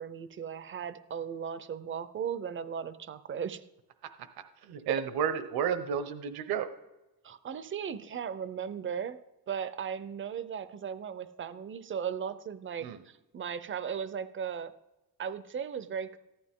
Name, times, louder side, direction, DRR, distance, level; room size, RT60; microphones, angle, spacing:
voice 1, 0.0-3.6 7.2-9.2 9.5-14.7 15.2-16.2, right 7 dB, 35° right, 13 dB, 0.6 m, -37 dB
voice 2, 4.6-6.7 12.8-13.0, right 8 dB, 75° right, 10 dB, 1.1 m, -31 dB
14.5 x 12.0 x 3.7 m, 1.0 s
cardioid pair, 160°, 37 cm